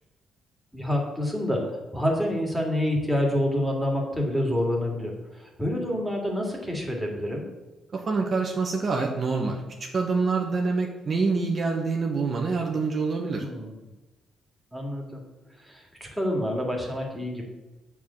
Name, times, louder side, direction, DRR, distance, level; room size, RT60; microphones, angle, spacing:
voice 1, 0.7-1.6 1.9-7.4 13.2-13.8 14.7-15.2 15.6-17.4, left 1 dB, ahead, -1 dB, 2.5 m, -27 dB
voice 2, 8.1-9.6 9.9-13.4, right 4 dB, 45° right, 1 dB, 1.2 m, -26 dB
8.4 x 4.8 x 7.2 m, 1.1 s
cardioid pair, 90°, 0 cm